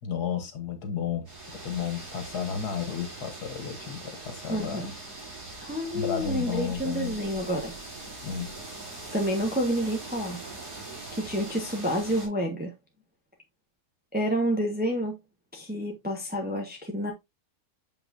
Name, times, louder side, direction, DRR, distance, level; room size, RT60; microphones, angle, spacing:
voice 1, 0.0-1.3 1.6-4.9 5.9-7.2 8.2-8.6, left 7 dB, 85° left, 1.9 m, -32 dB
sound 1, 1.2-12.3, right 2 dB, 80° right, 3.9 m, -42 dB
voice 2, 4.5-4.9 5.6-7.7 9.1-10.4 11.1-12.7 14.1-15.1 15.5-17.1, equal, 5° right, 1.3 m, -29 dB
6.9 x 5.6 x 2.7 m
omnidirectional pair, 1.6 m